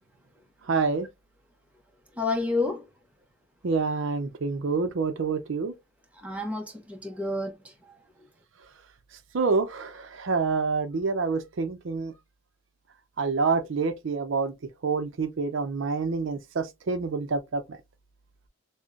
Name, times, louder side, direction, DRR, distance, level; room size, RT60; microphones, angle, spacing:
voice 1, 0.7-1.1 3.6-5.7 9.3-12.1 13.2-14.5 14.8-17.6, right 4 dB, 65° right, 0.5 m, -27 dB
voice 2, 2.2-2.8 6.2-7.6, left 3 dB, 5° right, 0.7 m, -29 dB
5.2 x 2.1 x 2.4 m
head